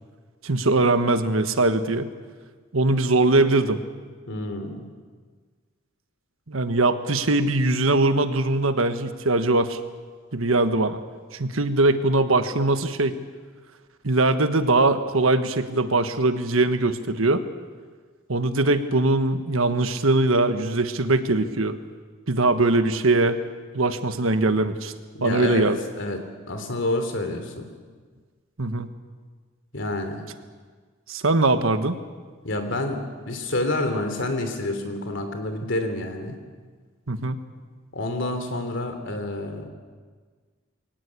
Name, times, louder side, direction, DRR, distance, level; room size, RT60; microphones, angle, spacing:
voice 1, 0.4-2.1 2.7-3.8 6.5-9.8 10.3-11.0 11.4-13.1 14.0-17.4 18.3-21.8 22.3-23.4 23.7-24.9 25.2-25.8 28.6-28.9 31.1-32.0 37.1-37.4, right 2 dB, 85° right, 10 dB, 1.4 m, -21 dB
voice 2, 4.3-4.9 25.1-25.7 26.0-26.2 26.5-27.7 29.7-30.2 32.4-36.4 37.9-39.7, left 2 dB, 65° left, 6 dB, 3.1 m, -28 dB
22.5 x 18.5 x 8.4 m, 1.5 s
head